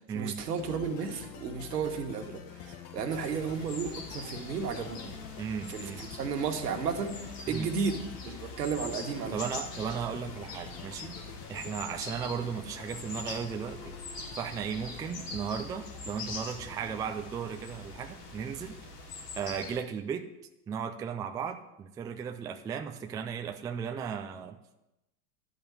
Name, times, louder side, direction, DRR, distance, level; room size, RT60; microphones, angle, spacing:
voice 1, 0.1-5.1 5.7-7.2 7.5-8.0 8.3-9.3, right 5 dB, 85° right, 4 dB, 1.8 m, -33 dB
sound 1, 0.6-19.9, left 7 dB, 40° left, 1.4 m, -47 dB
sound 2, 3.1-19.8, left 2 dB, 75° left, 3.8 m, -44 dB
voice 2, 5.4-6.1 7.5-7.7 9.3-11.2 11.5-14.0 14.4-18.8 19.4-20.3 20.7-24.8, right 7 dB, 10° right, 6 dB, 0.3 m, -36 dB
11.5 x 5.4 x 8.6 m, 0.92 s
hypercardioid pair, 115°, 47 cm